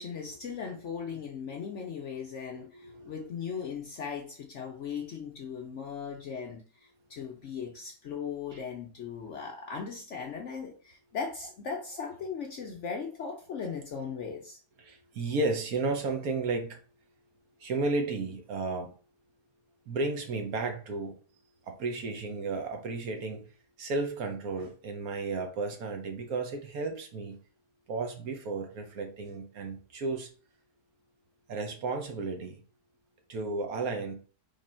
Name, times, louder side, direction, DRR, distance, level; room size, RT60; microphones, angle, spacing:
voice 1, 0.0-14.6, left 6 dB, 60° left, 0.8 m, -38 dB
voice 2, 2.5-3.4 14.8-16.8 17.6-18.9 19.9-21.1 21.7-23.5 23.8-27.3 27.9-30.3 31.5-32.6 33.3-34.1, right 3 dB, 65° right, 1.2 m, -33 dB
3.8 x 3.2 x 4.3 m
omnidirectional pair, 1.8 m